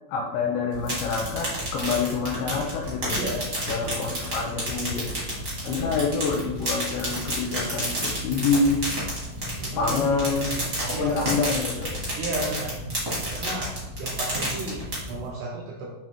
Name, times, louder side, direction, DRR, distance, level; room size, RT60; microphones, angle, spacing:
voice 1, 0.1-3.2 3.6-5.1 5.6-8.8 9.8-10.6 10.8-11.9, left 4 dB, 85° left, 1 dB, 2.6 m, -27 dB
sound 1, 0.7-15.3, equal, 70° right, 0.7 m, -31 dB
voice 2, 3.2-3.5 3.8-4.0 5.7-6.0 9.6-11.6 12.2-12.8 13.3-15.9, right 1 dB, 85° right, -1 dB, 2.3 m, -34 dB
9.0 x 3.1 x 3.5 m, 0.98 s
omnidirectional pair, 5.6 m